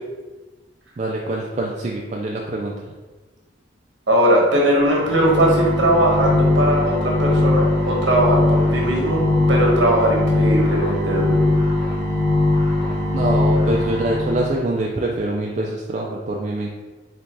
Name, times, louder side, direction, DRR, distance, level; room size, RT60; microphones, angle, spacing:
voice 1, 1.0-2.7 13.1-16.7, right 2 dB, 35° right, -2 dB, 0.3 m, -24 dB
voice 2, 4.1-9.2 9.5-11.4, right 1 dB, 70° right, -2 dB, 1.1 m, -19 dB
sound 1, 4.8-14.5, left 2 dB, 70° left, 1.3 m, -20 dB
4.0 x 3.1 x 3.3 m, 1.2 s
head